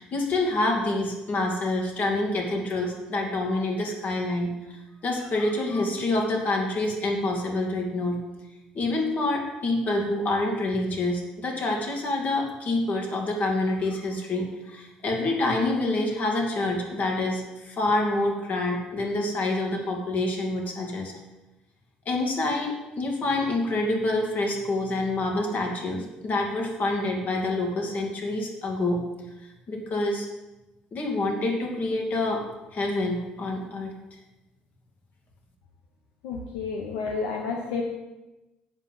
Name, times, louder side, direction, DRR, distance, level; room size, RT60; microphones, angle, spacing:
voice 1, 0.0-8.2 8.7-21.1 22.1-29.0 29.7-30.3 30.9-32.5 32.7-33.9, left 2 dB, 45° left, 1 dB, 2.6 m, -27 dB
voice 2, 36.2-37.8, left 4 dB, 80° left, 0 dB, 1.2 m, -30 dB
8.0 x 5.8 x 7.4 m, 1.0 s
hypercardioid pair, 60°, 4 cm